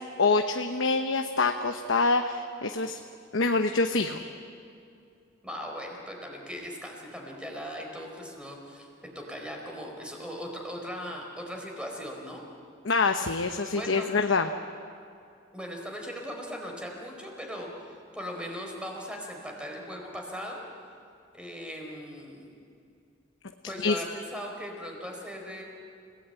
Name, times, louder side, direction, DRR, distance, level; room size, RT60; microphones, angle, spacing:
voice 1, 0.2-3.0 3.3-4.2 12.8-14.5 23.8-24.0, left 3 dB, 70° left, 5 dB, 1.0 m, -25 dB
voice 2, 5.4-8.9 9.1-12.5 13.7-14.1 15.5-20.6 21.3-22.5 23.7-25.6, equal, 5° right, 1 dB, 4.6 m, -39 dB
29.5 x 18.0 x 9.1 m, 2.5 s
head